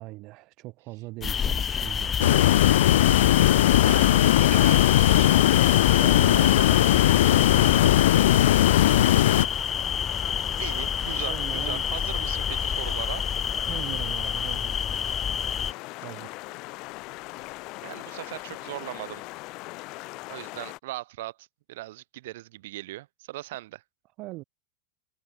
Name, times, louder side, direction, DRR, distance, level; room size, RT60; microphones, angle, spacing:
voice 1, 0.0-3.2 6.0-8.0 8.8-9.1 11.3-11.9 13.5-14.8 16.0-16.3 24.2-24.4, right 21 dB, 50° right, 4.0 m, -40 dB
sound 1, 1.2-15.7, left 7 dB, 25° left, 0.5 m, -28 dB
sound 2, 2.2-9.5, left 13 dB, 80° left, 0.6 m, -19 dB
voice 2, 3.8-5.9 10.6-13.3 16.1-16.2 17.4-19.2 20.3-23.8, right 17 dB, 70° right, 6.7 m, -39 dB
sound 3, 8.6-20.8, left 23 dB, 55° left, 6.1 m, -40 dB
hypercardioid pair, 105°, 0 cm